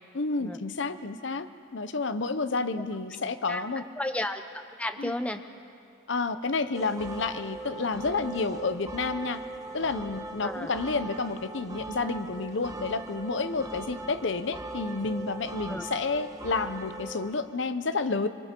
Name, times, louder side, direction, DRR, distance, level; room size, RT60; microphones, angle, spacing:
voice 1, 0.1-1.5 1.7-3.8 5.0-5.1 6.1-9.4 9.7-18.3, left 3 dB, 60° left, 11 dB, 0.8 m, -30 dB
voice 2, 3.5-5.4 10.4-10.7 15.7-15.9, left 1 dB, 5° left, 7 dB, 0.7 m, -33 dB
sound 1, 6.7-17.3, right 2 dB, 15° right, 1.4 m, -40 dB
26.0 x 25.0 x 4.5 m, 2.4 s
head